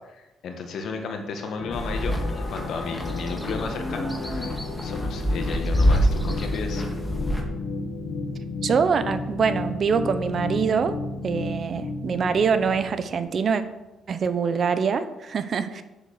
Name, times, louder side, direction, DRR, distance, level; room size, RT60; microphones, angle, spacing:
voice 1, 0.1-6.8, left 4 dB, 70° left, 4 dB, 1.7 m, -34 dB
sound 1, 1.6-13.3, left 3 dB, 85° left, 1.9 m, -33 dB
sound 2, 1.7-7.4, equal, 5° left, 1.7 m, -26 dB
voice 2, 8.6-11.0 11.2-13.6 14.1-15.8, right 6 dB, 50° right, 12 dB, 0.8 m, -24 dB
7.2 x 6.6 x 7.2 m, 1.0 s
cardioid pair, 90°, 0 cm